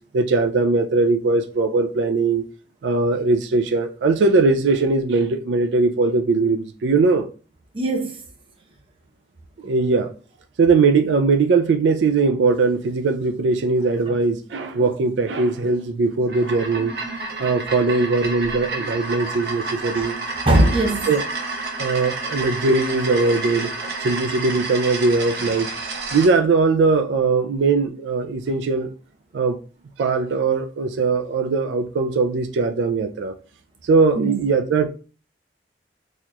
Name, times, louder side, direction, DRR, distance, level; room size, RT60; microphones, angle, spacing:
voice 1, 0.1-2.4 2.8-7.3 9.6-10.1 10.6-16.9 17.4-20.2 21.1-21.2 21.8-25.7 26.1-28.9 29.3-29.6 30.0-33.3 33.8-34.9, right 3 dB, 85° right, 0.4 m, -20 dB
voice 2, 7.7-8.2 14.8-14.9 16.8-17.2 18.8-18.9 19.9-20.0 20.5-21.1 34.2-34.4, right 1 dB, 30° right, 0.7 m, -21 dB
sound 1, 16.2-26.3, right 3 dB, 60° right, 0.8 m, -30 dB
4.1 x 2.9 x 2.3 m
head